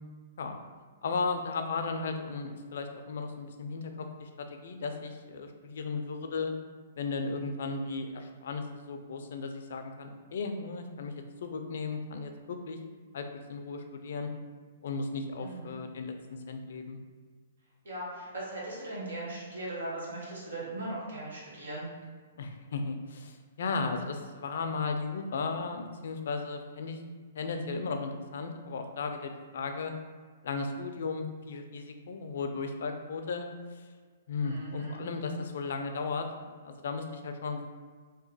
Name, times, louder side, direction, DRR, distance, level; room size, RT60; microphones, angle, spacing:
voice 1, 1.0-6.5 7.0-12.8 13.1-14.3 14.8-16.1 16.5-17.0 22.4-27.0 27.3-29.9 30.4-33.5 33.8-33.9 34.3-36.3 36.6-37.7, left 4 dB, 70° left, 5 dB, 0.4 m, -35 dB
voice 2, 15.4-15.7 17.8-21.9 34.4-35.0, right 1 dB, 85° right, -6 dB, 1.3 m, -39 dB
2.9 x 2.2 x 3.9 m, 1.5 s
hypercardioid pair, 140°, 0 cm